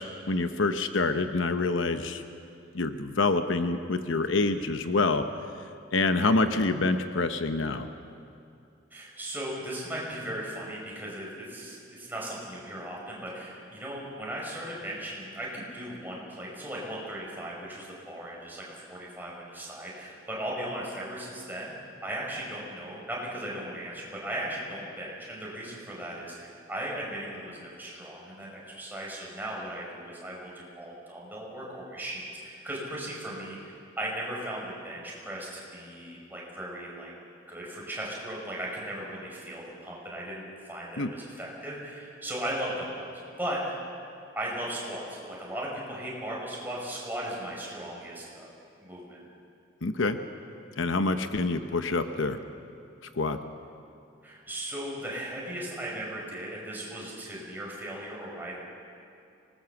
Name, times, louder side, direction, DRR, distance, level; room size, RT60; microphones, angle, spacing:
voice 1, 0.0-2.2 2.7-5.2 5.9-7.9 41.0-41.1 49.8-50.2 50.8-52.4 53.2-53.4, left 3 dB, 75° left, 8 dB, 0.9 m, -26 dB
voice 2, 8.9-21.7 22.0-37.1 37.5-43.1 43.4-43.8 44.3-48.5 48.8-49.2 54.2-58.6, right 1 dB, 10° right, -4 dB, 5.4 m, -37 dB
25.0 x 19.5 x 7.2 m, 2.5 s
head